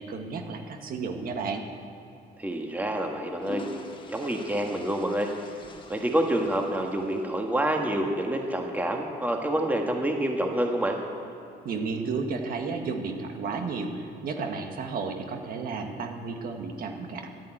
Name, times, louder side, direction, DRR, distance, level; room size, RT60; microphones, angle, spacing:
voice 1, 0.0-1.6 11.7-17.3, right 4 dB, 60° right, 4 dB, 1.7 m, -32 dB
voice 2, 2.4-3.6 4.1-5.3 5.9-11.0, right 1 dB, 10° right, 2 dB, 1.6 m, -27 dB
sound 1, 3.2-7.6, left 2 dB, 30° left, 1.4 m, -44 dB
11.0 x 10.5 x 8.9 m, 2.8 s
cardioid pair, 110°, 17 cm